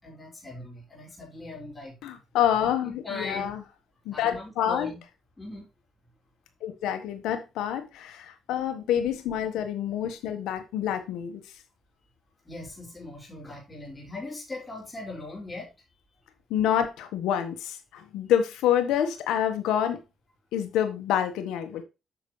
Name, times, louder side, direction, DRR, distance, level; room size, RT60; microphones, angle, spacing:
voice 1, 0.0-2.0 2.8-3.5 4.1-5.0 5.4-5.7 12.4-15.7, left 2 dB, 20° left, 4.9 m, -39 dB
voice 2, 2.0-3.6 4.0-4.9 6.6-11.4 16.5-20.0 20.5-21.8, left 10 dB, 90° left, 1.3 m, -27 dB
9.2 x 6.4 x 3.2 m
cardioid pair, 90°, 0 cm